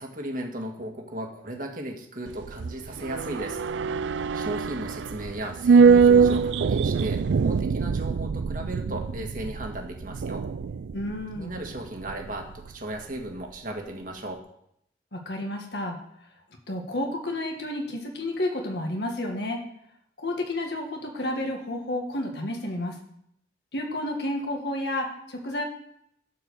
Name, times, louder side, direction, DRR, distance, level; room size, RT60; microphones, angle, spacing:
voice 1, 0.0-3.6 4.3-10.4 11.4-14.4, right 1 dB, 45° right, 2 dB, 1.7 m, -36 dB
sound 1, 2.3-12.7 13.0-13.1, right 5 dB, 80° right, 0.4 m, -23 dB
voice 2, 10.9-11.5 15.1-16.0 16.7-19.6 20.2-23.0 23.7-25.6, left 1 dB, 65° left, 1 dB, 1.7 m, -31 dB
13.0 x 4.8 x 6.8 m, 0.74 s
head